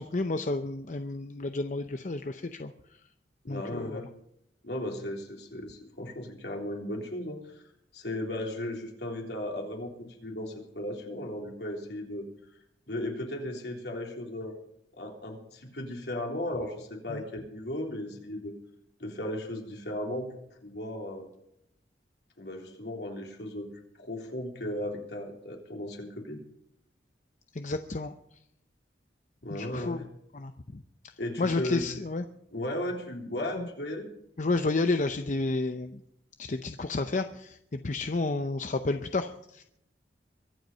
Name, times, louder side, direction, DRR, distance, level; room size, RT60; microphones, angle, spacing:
voice 1, 0.0-2.7 3.5-4.0 17.1-17.2 27.5-28.1 29.5-30.0 30.3-30.8 31.4-32.2 33.5-33.7 34.4-36.0 36.4-39.6, left 3 dB, 45° left, 8 dB, 0.7 m, -31 dB
voice 2, 3.4-4.1 4.6-7.6 7.9-9.9 10.2-12.3 12.9-14.6 15.0-18.5 19.0-20.3 20.6-21.3 22.4-23.7 24.0-26.4 29.4-30.0 31.2-31.8 32.5-34.1, left 1 dB, 65° left, 1 dB, 3.5 m, -36 dB
23.5 x 8.0 x 5.5 m, 0.77 s
head